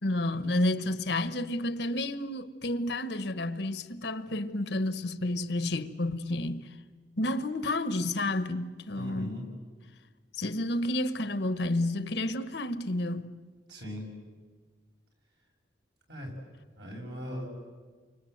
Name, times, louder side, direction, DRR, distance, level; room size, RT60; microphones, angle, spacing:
voice 1, 0.0-6.7 7.2-9.3 10.4-13.3, left 1 dB, 60° left, 1.2 m, -30 dB
voice 2, 8.9-9.5 13.7-14.1 16.1-16.3 16.8-17.5, equal, 60° right, 6.7 m, -39 dB
29.0 x 25.0 x 8.0 m
head